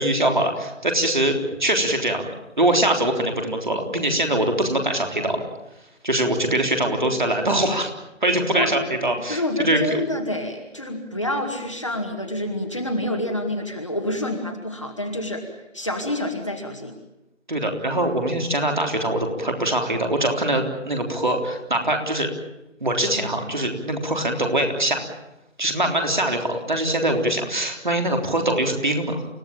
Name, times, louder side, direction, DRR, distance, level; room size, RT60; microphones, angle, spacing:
voice 1, 0.0-1.3 1.6-2.3 2.6-5.4 6.0-7.9 8.2-10.0 17.5-22.3 22.8-25.0 25.6-29.3, right 1 dB, 35° right, 3 dB, 3.7 m, -23 dB
voice 2, 8.3-8.7 9.3-16.9, left 1 dB, 25° left, 2 dB, 2.2 m, -28 dB
29.0 x 16.5 x 8.9 m, 0.95 s
figure-of-eight pair, 170°, 38 cm